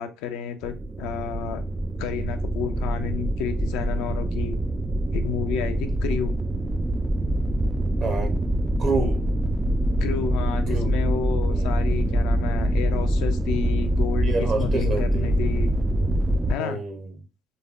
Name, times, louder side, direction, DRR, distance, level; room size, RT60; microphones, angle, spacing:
voice 1, 0.0-1.6 2.0-4.6 5.1-6.4 10.0-15.7 16.5-16.8, left 7 dB, 60° left, 0.4 m, -31 dB
sound 1, 0.6-16.5, right 1 dB, 15° right, 0.3 m, -24 dB
voice 2, 8.0-8.3 8.8-9.2 10.7-10.9 11.5-11.7 14.2-15.3 16.6-17.1, right 2 dB, 45° right, 0.8 m, -28 dB
3.3 x 3.1 x 2.3 m
figure-of-eight pair, 55°, 0 cm